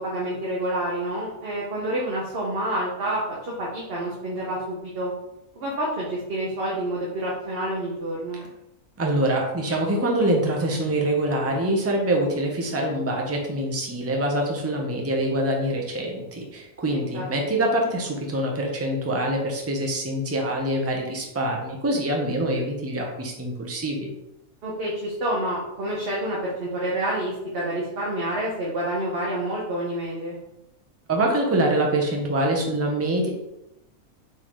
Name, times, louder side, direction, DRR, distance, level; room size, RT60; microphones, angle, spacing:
voice 1, 0.0-5.1 5.6-8.4 16.9-17.2 24.6-30.4, right 1 dB, 50° right, -5 dB, 1.0 m, -28 dB
voice 2, 9.0-24.1 31.1-33.3, right 1 dB, 15° right, 0 dB, 0.5 m, -25 dB
4.5 x 3.7 x 3.0 m, 0.86 s
omnidirectional pair, 1.5 m